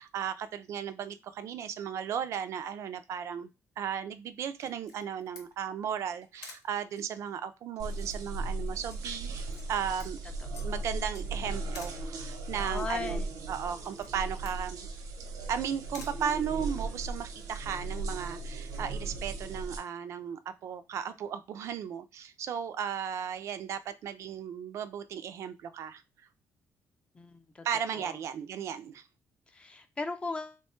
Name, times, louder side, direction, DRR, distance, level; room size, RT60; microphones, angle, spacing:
voice 1, 0.0-3.5 3.8-10.2 10.6-13.2 13.5-14.9 15.5-26.0 27.6-29.0, right 8 dB, 55° right, 0.3 m, -35 dB
Camera, 4.6-17.1, left 4 dB, 85° left, 0.9 m, -54 dB
sound 1, 6.0-7.5 7.8-8.3 8.6-10.1 10.5-10.8 11.1-11.4 11.7-11.8 12.3-12.4, left 4 dB, 60° left, 0.6 m, -57 dB
sound 2, 7.8-19.8, right 3 dB, 85° right, 0.8 m, -37 dB
voice 2, 12.5-13.5 27.1-27.7 27.9-28.2 29.5-30.6, left 3 dB, 20° left, 0.4 m, -38 dB
3.0 x 2.2 x 4.2 m
cardioid pair, 175°, 6 cm